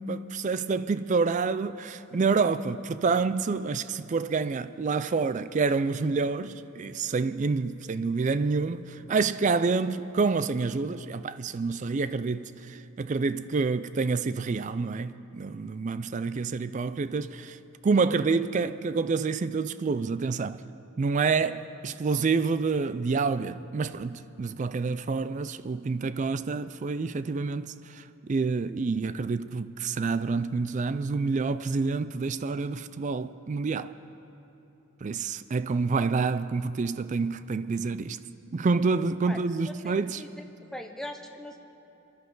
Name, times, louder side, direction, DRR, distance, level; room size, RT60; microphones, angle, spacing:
voice 1, 0.0-17.6 17.8-20.6 21.0-28.0 28.3-33.9 35.0-38.2 38.5-40.2, right 4 dB, 35° right, 0.3 m, -28 dB
voice 2, 39.6-40.4 40.7-41.6, left 1 dB, ahead, 0.7 m, -40 dB
24.5 x 11.5 x 3.9 m
head